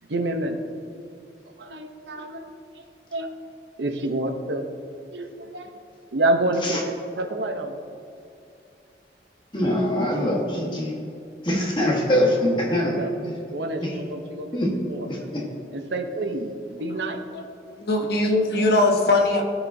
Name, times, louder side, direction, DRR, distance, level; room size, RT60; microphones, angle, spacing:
voice 1, 0.1-0.6 1.6-2.5 2.7-2.8 3.1-3.3 3.8-4.7 5.1-5.7 6.1-6.8 7.1-7.8 12.8-13.1 13.5-15.1 15.7-17.2, right 2 dB, 85° right, 5 dB, 0.8 m, -28 dB
voice 2, 9.5-10.9 11.4-13.2 13.8-13.9 14.5-14.7 15.1-15.4, left 1 dB, 25° left, -2 dB, 1.4 m, -23 dB
voice 3, 17.8-19.4, left 2 dB, 65° left, 2 dB, 1.0 m, -20 dB
14.5 x 5.0 x 2.7 m, 2.6 s
head